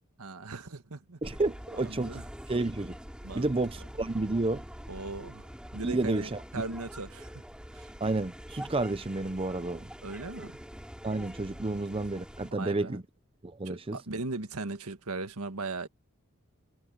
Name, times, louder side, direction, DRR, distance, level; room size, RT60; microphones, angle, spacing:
voice 1, 0.2-1.2 1.8-2.2 3.2-3.5 4.9-7.4 7.7-7.9 10.0-10.6 12.5-13.0 13.6-15.9, right 3 dB, 80° right, 1.6 m, -38 dB
sound 1, 1.2-12.5, equal, 5° right, 5.1 m, -45 dB
voice 2, 1.2-2.2 2.5-3.0 3.3-4.6 5.8-6.4 8.0-9.9 11.0-13.0 13.4-14.0, right 2 dB, 25° right, 0.6 m, -30 dB
head